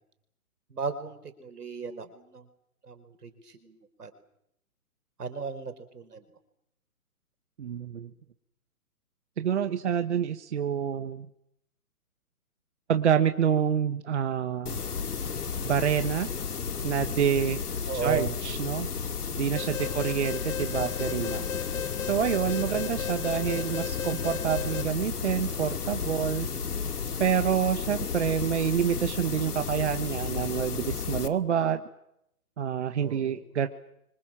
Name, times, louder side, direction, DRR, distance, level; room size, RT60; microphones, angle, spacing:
voice 1, 0.7-2.5 2.8-4.1 5.2-6.3 17.9-18.3 19.8-20.1 22.6-22.8 33.0-33.4, right 4 dB, 85° right, 9 dB, 4.8 m, -36 dB
voice 2, 7.6-8.1 9.4-11.3 12.9-14.8 15.6-16.3 16.8-17.6 18.0-18.9 19.4-21.5 22.0-26.5 27.2-31.8 32.6-33.7, right 8 dB, 50° right, 8 dB, 1.5 m, -27 dB
sound 1, 14.7-31.3, left 6 dB, 85° left, 2.2 m, -33 dB
Alarm, 19.6-24.8, left 8 dB, 55° left, 1.1 m, -36 dB
29.5 x 25.0 x 7.5 m, 0.78 s
hypercardioid pair, 165°, 45 cm